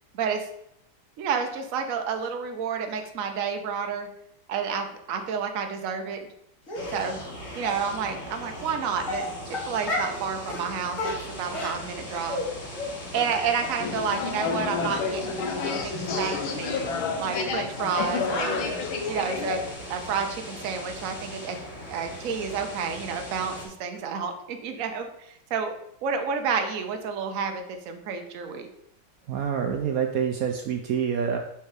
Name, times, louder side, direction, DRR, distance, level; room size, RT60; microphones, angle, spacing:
voice 1, 0.1-0.5 1.2-4.1 4.5-6.2 6.9-7.2 7.5-12.4 13.1-16.8 17.2-18.6 19.1-19.6 19.9-21.6 21.9-25.7 26.0-28.7, right 6 dB, 55° right, 5 dB, 1.0 m, -30 dB
sound 1, 6.7-23.7, equal, 70° left, 3.0 m, -40 dB
Dog, 6.7-7.0 7.6-7.8 8.5-8.7 9.0-10.2 10.5-10.6 10.9-12.5 12.7-12.9 13.2-13.3 13.6-13.7 14.1-14.2 14.6-14.7 14.9-15.0, left 2 dB, 40° left, 2.3 m, -32 dB
sound 2, 13.8-19.7, left 4 dB, 90° left, 1.7 m, -30 dB
voice 2, 29.3-31.4, right 7 dB, 80° right, 4 dB, 0.8 m, -27 dB
5.6 x 4.6 x 4.8 m, 0.77 s
omnidirectional pair, 2.2 m